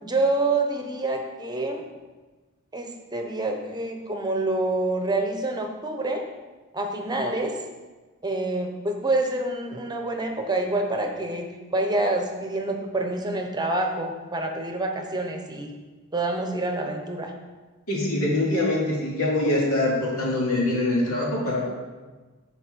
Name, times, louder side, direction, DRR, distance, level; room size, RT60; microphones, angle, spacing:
voice 1, 0.0-1.9 2.7-6.2 6.7-7.5 8.2-15.7 16.1-17.3, right 2 dB, 20° right, 3 dB, 1.0 m, -27 dB
voice 2, 17.9-21.6, left 2 dB, 70° left, -4 dB, 2.7 m, -24 dB
13.5 x 4.7 x 4.6 m, 1.3 s
head